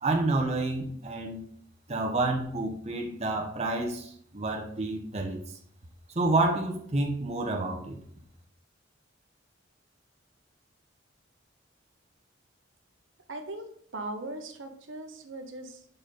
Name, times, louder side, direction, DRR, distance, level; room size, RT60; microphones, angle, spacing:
voice 1, 0.0-1.4 1.9-5.4 6.2-8.0, right 2 dB, 35° right, 1 dB, 0.9 m, -29 dB
voice 2, 13.3-13.7 13.9-15.9, right 2 dB, 80° right, 5 dB, 1.0 m, -39 dB
6.6 x 4.6 x 3.8 m, 0.62 s
head